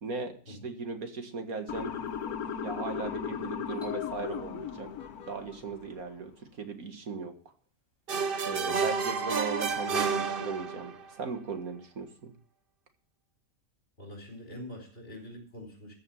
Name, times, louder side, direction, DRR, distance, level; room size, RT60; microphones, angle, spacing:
voice 1, 0.0-1.9 2.6-4.9 5.3-7.3 8.4-12.3, right 4 dB, 75° right, 6 dB, 2.2 m, -37 dB
Motor vehicle (road) / Siren, 1.7-5.8, left 7 dB, 85° left, 1.5 m, -36 dB
sound 1, 3.8-5.0, left 12 dB, 15° left, 3.2 m, -44 dB
sound 2, 8.1-11.0, right 5 dB, 45° right, 1.0 m, -30 dB
voice 2, 14.0-15.9, left 1 dB, 40° left, 3 dB, 4.6 m, -45 dB
14.0 x 6.4 x 7.2 m, 0.43 s
omnidirectional pair, 1.5 m